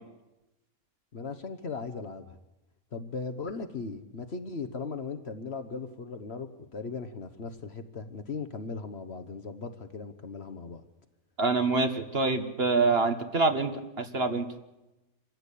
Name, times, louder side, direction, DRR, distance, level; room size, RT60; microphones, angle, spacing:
voice 1, 1.1-2.4 2.9-10.8, left 4 dB, 50° left, 10 dB, 1.2 m, -38 dB
voice 2, 11.4-14.5, right 3 dB, 45° right, 7 dB, 1.7 m, -26 dB
26.0 x 15.5 x 8.4 m, 1.0 s
omnidirectional pair, 1.5 m